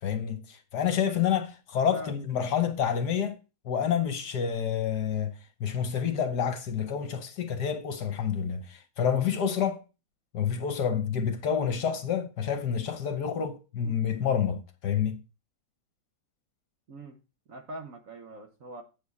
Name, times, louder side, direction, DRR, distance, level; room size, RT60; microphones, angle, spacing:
voice 1, 0.0-3.4 3.6-9.8 10.3-15.2, left 8 dB, 60° left, 1.3 m, -28 dB
voice 2, 13.8-14.3 16.9-17.2 17.5-18.8, right 1 dB, 50° right, 1.2 m, -43 dB
8.2 x 7.1 x 4.1 m
omnidirectional pair, 2.2 m